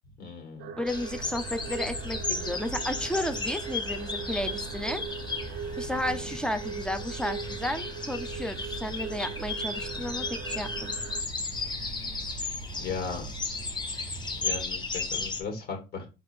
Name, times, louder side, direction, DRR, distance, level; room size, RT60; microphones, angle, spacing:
voice 1, 0.2-0.8 6.1-6.3 12.8-13.3 14.3-16.1, left 5 dB, 65° left, 3 dB, 2.0 m, -37 dB
sound 1, 0.6-11.2, right 7 dB, 85° right, 0.6 m, -40 dB
voice 2, 0.8-5.0 5.8-11.0, left 1 dB, 5° left, 9 dB, 0.5 m, -33 dB
sound 2, 0.9-15.4, left 4 dB, 25° left, 1.1 m, -35 dB
sound 3, 0.9-14.6, right 5 dB, 35° right, 0.6 m, -43 dB
4.2 x 2.8 x 4.4 m, 0.29 s
cardioid pair, 110°, 17 cm